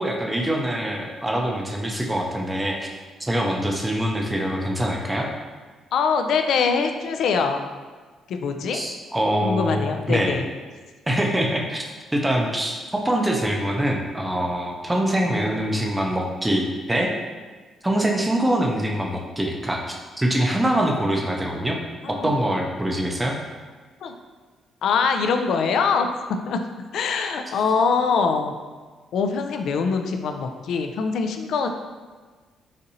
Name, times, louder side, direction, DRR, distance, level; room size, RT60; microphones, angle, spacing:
voice 1, 0.0-2.9 3.2-5.3 8.7-10.4 11.1-17.1 17.8-21.8 22.1-23.4, right 1 dB, 10° right, 1 dB, 0.5 m, -24 dB
voice 2, 5.9-7.7 8.3-8.8 9.4-10.4 22.0-22.3 24.0-24.1 24.8-26.1 26.5-26.6 26.9-28.5 29.1-31.7, left 5 dB, 70° left, 5 dB, 0.3 m, -23 dB
4.2 x 2.5 x 2.7 m, 1.4 s
cardioid pair, 90°, 0 cm